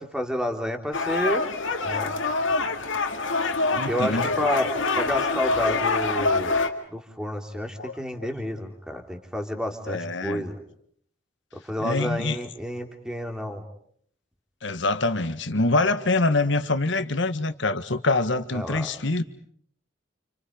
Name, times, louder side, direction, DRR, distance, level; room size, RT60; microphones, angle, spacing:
voice 1, 0.0-1.5 1.8-2.1 3.9-6.6 6.9-10.6 11.6-13.6 18.5-18.9, left 1 dB, 5° right, 4 dB, 3.3 m, -30 dB
sound 1, 0.9-6.7, left 3 dB, 85° left, 2.3 m, -25 dB
voice 2, 3.7-4.3 7.8-8.0 9.9-10.4 11.8-12.4 14.6-19.2, left 2 dB, 70° left, 10 dB, 1.7 m, -25 dB
29.5 x 29.5 x 5.3 m, 0.63 s
head